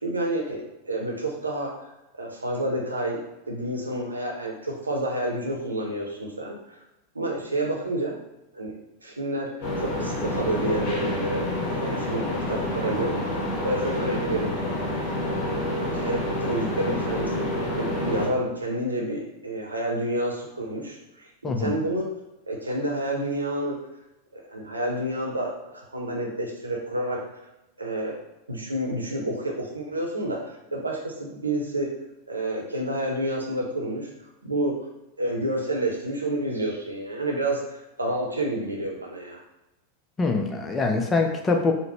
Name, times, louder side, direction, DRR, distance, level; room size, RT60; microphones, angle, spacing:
voice 1, 0.0-1.7 2.1-3.2 3.5-6.6 7.1-8.1 8.5-8.7 9.0-11.5 11.7-13.4 13.6-14.5 15.5-17.5 17.8-22.0 22.5-23.8 24.5-27.3 27.8-28.1 28.5-31.9 32.3-34.1 34.4-34.8 35.2-39.4, right 1 dB, 80° right, -1 dB, 0.7 m, -29 dB
sound 1, 9.6-18.3, left 1 dB, 35° left, 1.0 m, -28 dB
voice 2, 21.4-21.8 40.2-41.7, left 3 dB, 20° left, 3 dB, 0.5 m, -24 dB
3.8 x 2.0 x 3.0 m, 0.93 s
figure-of-eight pair, 90°, 0 cm